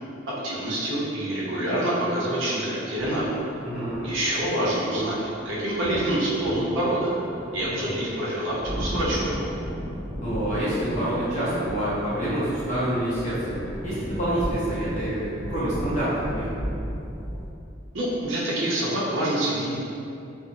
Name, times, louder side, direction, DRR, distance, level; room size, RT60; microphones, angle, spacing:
voice 1, 0.4-3.3 4.0-7.1 7.5-9.4 17.9-19.7, right 1 dB, 85° right, -7 dB, 0.7 m, -26 dB
sound 1, 3.0-17.5, equal, 5° left, 0.7 m, -35 dB
voice 2, 3.6-4.1 10.2-16.5, right 1 dB, 40° left, -11 dB, 0.8 m, -27 dB
2.6 x 2.1 x 2.8 m, 2.7 s
head